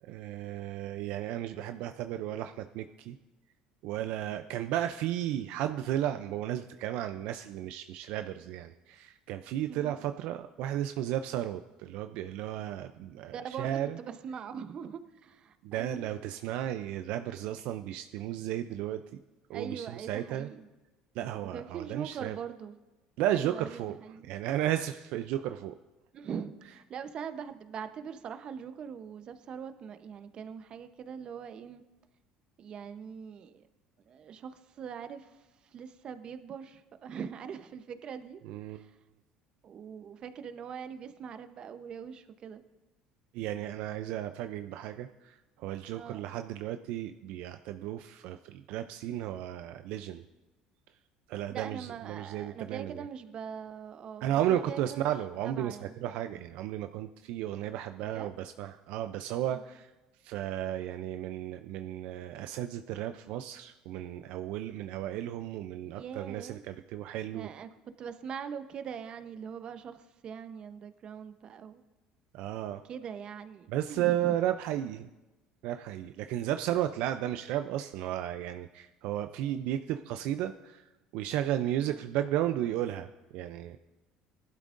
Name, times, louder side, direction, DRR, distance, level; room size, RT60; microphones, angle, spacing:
voice 1, 0.0-3.2 3.8-14.0 15.6-19.2 19.5-20.5 21.1-22.4 23.2-24.0 24.2-25.8 38.4-38.8 43.3-50.2 51.3-53.0 54.2-59.9 60.2-67.5 72.3-72.8 73.7-75.1 75.6-83.8, right 12 dB, 70° right, 9 dB, 0.4 m, -34 dB
voice 2, 9.7-10.0 13.0-16.1 19.5-20.7 21.5-22.8 23.3-24.3 26.1-31.8 32.6-33.7 34.1-38.4 38.7-39.0 39.6-42.6 45.9-46.3 51.5-55.0 55.4-56.0 58.1-58.3 59.5-59.6 66.0-66.6 67.3-67.7 68.0-71.8 72.8-74.4 81.8-82.0, right 7 dB, 45° right, 10 dB, 0.8 m, -42 dB
18.0 x 12.0 x 2.6 m, 1.1 s
supercardioid pair, 100°, 2 cm